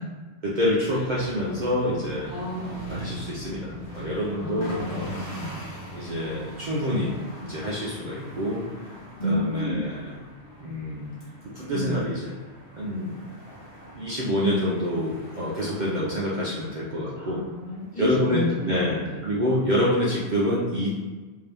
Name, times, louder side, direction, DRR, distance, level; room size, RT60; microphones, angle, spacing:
voice 1, 0.4-2.3 2.9-5.2 5.9-8.6 9.2-10.1 10.6-11.1 11.5-12.3 12.8-13.2 13.9-17.4 18.0-20.9, equal, 50° right, -6 dB, 0.6 m, -27 dB
sound 1, 0.9-19.5, right 1 dB, 75° left, 1.3 m, -42 dB
voice 2, 2.3-2.7 4.4-5.6 9.2-9.9 11.7-12.0 17.2-19.3, left 1 dB, 35° left, -7 dB, 1.2 m, -31 dB
3.7 x 2.6 x 3.4 m, 1.3 s
omnidirectional pair, 1.2 m